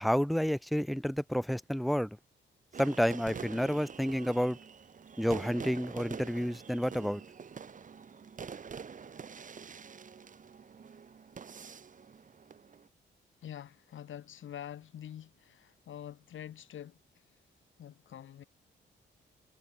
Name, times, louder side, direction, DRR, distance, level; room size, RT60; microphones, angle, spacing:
voice 1, 0.0-2.2 2.8-4.6 5.2-7.2, equal, ahead, 0.5 m, -30 dB
sound 1, 2.7-12.9, right 6 dB, 40° right, 1.3 m, -46 dB
voice 2, 13.4-17.0 17.8-18.4, left 10 dB, 80° left, 6.1 m, -46 dB
cardioid pair, 95°, 20 cm